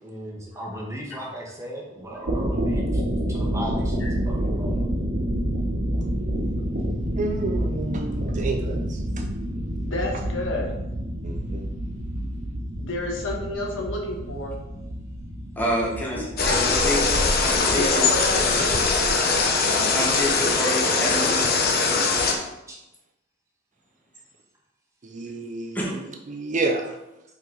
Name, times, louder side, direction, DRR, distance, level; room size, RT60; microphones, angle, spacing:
voice 1, 0.0-3.0 3.3-4.8 22.7-22.8, right 1 dB, 15° right, -3 dB, 1.3 m, -36 dB
sound 1, 2.1-21.8, equal, 60° right, 1.2 m, -29 dB
voice 2, 7.1-8.8 11.2-11.6 25.0-26.9, right 3 dB, 40° right, 3 dB, 0.6 m, -29 dB
voice 3, 9.8-10.7 12.2-12.3 12.8-14.6 16.1-16.2 17.7-19.5, left 2 dB, 80° left, -1 dB, 1.5 m, -30 dB
voice 4, 15.6-18.0 19.8-21.6 25.7-25.9, equal, 10° left, -4 dB, 1.4 m, -28 dB
sound 2, 16.4-22.3, left 4 dB, 55° left, 0.9 m, -21 dB
5.5 x 4.6 x 3.9 m, 0.91 s
head